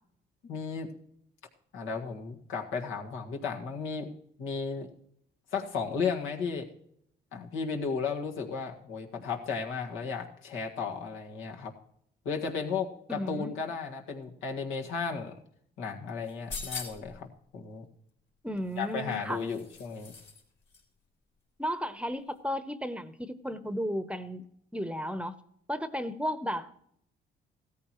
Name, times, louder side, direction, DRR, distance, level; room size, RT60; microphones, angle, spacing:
voice 1, 0.5-0.9 1.7-4.1 4.4-4.9 5.5-6.7 7.3-11.7 12.3-15.3 15.8-17.3 17.5-17.8 18.8-20.1, left 5 dB, 85° left, 1 dB, 1.8 m, -34 dB
voice 2, 13.1-13.6 18.4-19.4 21.6-24.4 24.7-25.4 25.7-26.7, equal, 5° right, 12 dB, 0.8 m, -34 dB
sound 1, 16.2-17.2 18.7-20.4 20.7-20.8, left 4 dB, 65° left, 3.4 m, -42 dB
16.0 x 14.0 x 3.1 m, 0.70 s
cardioid pair, 90°, 20 cm